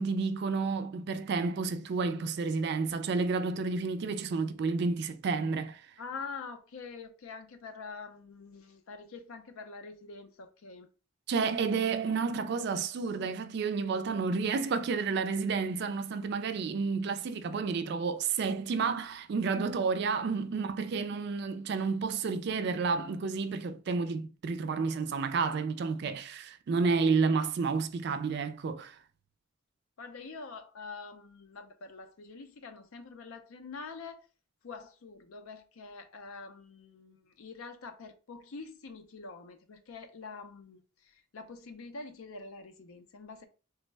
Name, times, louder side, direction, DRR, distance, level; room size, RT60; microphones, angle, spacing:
voice 1, 0.0-5.8 11.3-29.0, right 4 dB, 50° right, 0.3 m, -30 dB
voice 2, 6.0-10.9 30.0-34.3 34.6-43.5, left 4 dB, 80° left, 0.5 m, -45 dB
3.3 x 2.1 x 3.2 m
head